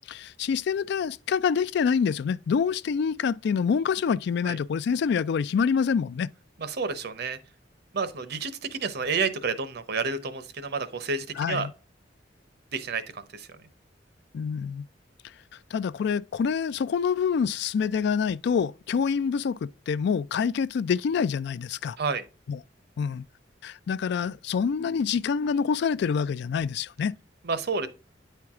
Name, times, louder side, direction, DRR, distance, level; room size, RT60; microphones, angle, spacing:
voice 1, 0.1-6.3 11.4-11.7 14.3-14.8 15.7-22.0 22.5-22.6 23.0-23.2 23.6-27.1, left 6 dB, 65° left, 0.3 m, -26 dB
voice 2, 6.6-7.4 7.9-11.7 12.7-13.6 22.0-22.2 27.4-27.9, right 4 dB, 60° right, 0.8 m, -30 dB
9.3 x 4.5 x 3.6 m
head